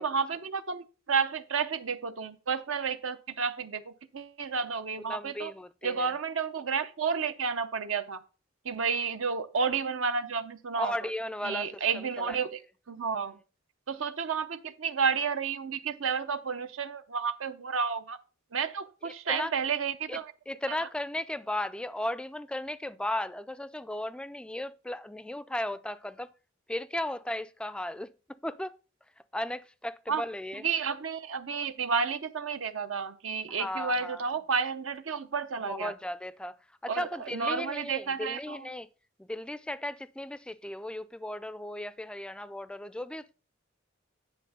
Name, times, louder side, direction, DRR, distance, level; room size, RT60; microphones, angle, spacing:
voice 1, 0.0-5.5 5.8-8.2 8.6-10.9 11.4-12.6 12.9-13.4 13.9-18.2 18.5-20.3 30.1-30.2 30.6-35.9 36.9-38.7, right 5 dB, 80° right, 0.7 m, -31 dB
voice 2, 5.0-6.1 10.7-12.4 19.0-19.6 20.1-20.2 20.5-26.3 26.7-28.8 29.3-30.7 33.5-34.2 35.6-38.9 39.2-43.3, left 1 dB, 5° left, 0.3 m, -36 dB
10.0 x 3.5 x 6.6 m
head